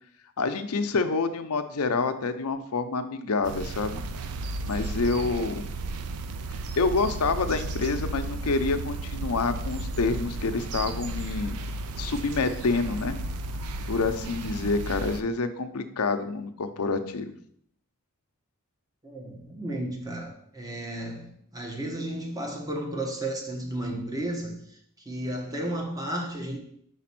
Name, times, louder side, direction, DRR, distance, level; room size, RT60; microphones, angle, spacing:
voice 1, 0.4-4.0 4.6-5.6 6.8-11.6 12.0-13.2 13.9-17.3, left 3 dB, 80° left, 0.6 m, -27 dB
sound 1, 3.4-15.2, right 2 dB, 90° right, 0.5 m, -34 dB
voice 2, 19.0-24.8 25.0-26.6, right 1 dB, 15° right, 1.1 m, -33 dB
5.1 x 4.1 x 5.9 m
head